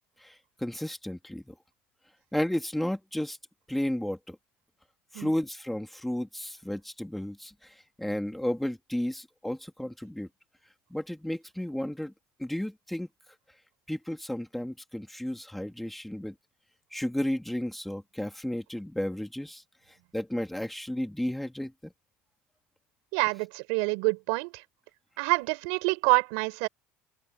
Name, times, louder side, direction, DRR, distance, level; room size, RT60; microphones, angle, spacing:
voice 1, 0.2-1.5 2.3-3.4 3.7-4.4 5.1-10.3 10.9-12.1 12.4-13.1 13.9-16.3 16.9-19.6 20.1-21.9, left 1 dB, 5° left, 2.8 m, -33 dB
voice 2, 23.1-24.6 25.2-26.7, right 34 dB, 80° right, 7.4 m, -27 dB
open air
supercardioid pair, 120°, 5 cm